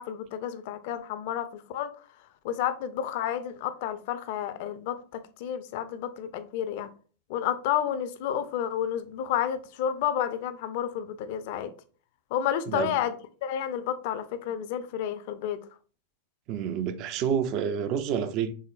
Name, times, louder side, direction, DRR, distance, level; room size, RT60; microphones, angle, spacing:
voice 1, 0.0-1.9 2.4-6.9 7.3-11.7 12.3-13.2 13.4-15.6, left 10 dB, 50° left, 0.5 m, -30 dB
voice 2, 16.5-18.5, right 8 dB, 40° right, 0.4 m, -28 dB
5.4 x 3.6 x 2.3 m
figure-of-eight pair, 90°, 0 cm